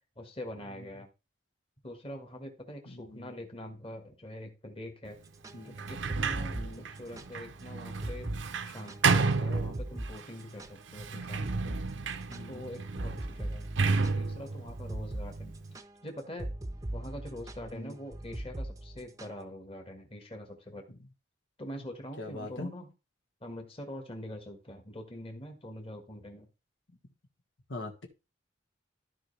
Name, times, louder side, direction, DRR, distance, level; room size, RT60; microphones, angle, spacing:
voice 1, 0.1-1.1 1.8-5.2 5.6-8.3 8.6-11.8 12.5-13.6 14.0-15.5 16.0-16.5 16.9-20.8 21.6-22.9 23.4-26.5, left 1 dB, 30° left, 4 dB, 1.7 m, -44 dB
voice 2, 2.9-3.3 5.5-5.7 6.5-6.8 12.3-12.6 17.7-17.9 22.2-22.7 27.7-28.1, left 2 dB, 85° left, 2 dB, 1.7 m, -41 dB
sound 1, 5.3-7.3 7.6-7.7 8.0-8.4 8.7-11.1 11.4-11.8 12.1-19.4, right 1 dB, 20° right, 0.6 m, -40 dB
Sliding door, 5.7-10.2 10.9-15.7, right 4 dB, 80° right, 0.7 m, -32 dB
13.5 x 4.9 x 3.4 m, 0.29 s
head